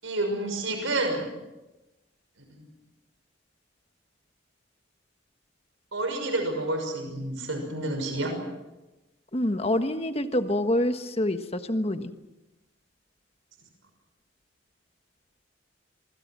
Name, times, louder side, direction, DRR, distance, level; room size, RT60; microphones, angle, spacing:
voice 1, 0.0-1.3 2.5-2.7 5.9-8.3, right 2 dB, 90° right, 5 dB, 6.1 m, -29 dB
voice 2, 9.3-12.1, left 1 dB, 30° left, 8 dB, 1.3 m, -26 dB
26.5 x 24.5 x 6.1 m, 1.0 s
head